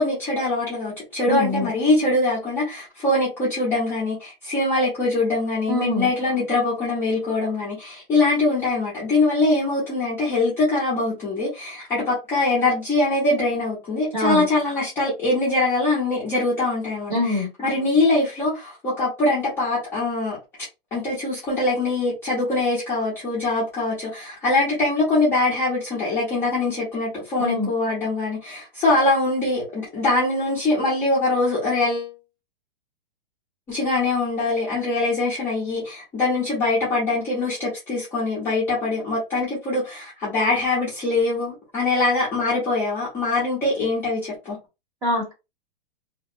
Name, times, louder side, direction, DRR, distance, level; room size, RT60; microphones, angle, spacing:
voice 1, 0.0-20.4 20.9-32.1 33.7-44.6, left 2 dB, 10° left, 0.6 m, -23 dB
voice 2, 1.3-1.7 5.7-6.1 14.1-14.5 17.1-17.5 27.4-27.7 45.0-45.3, left 2 dB, 15° right, 0.8 m, -23 dB
2.8 x 2.0 x 2.4 m
hypercardioid pair, 165°, 29 cm